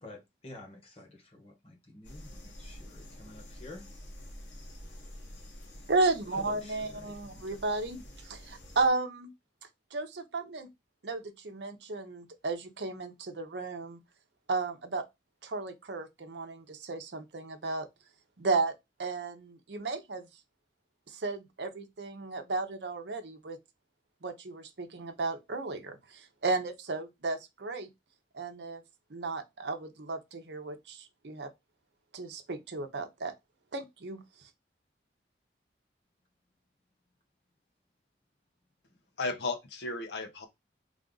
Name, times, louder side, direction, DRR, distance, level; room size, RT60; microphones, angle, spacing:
voice 1, 0.0-3.9 6.3-7.5, left 2 dB, 35° left, 1.4 m, -50 dB
sound 1, 2.0-8.9, equal, 85° left, 1.1 m, -48 dB
voice 2, 5.9-9.3 9.9-10.7 11.0-14.0 14.5-15.0 15.4-17.9 18.4-18.7 19.0-20.3 21.1-23.6 24.2-27.9 28.3-28.8 29.1-31.5 32.1-33.3 33.7-34.2, right 3 dB, 70° right, 0.7 m, -34 dB
voice 3, 39.2-40.5, left 3 dB, 70° left, 0.7 m, -34 dB
3.3 x 2.5 x 3.8 m
head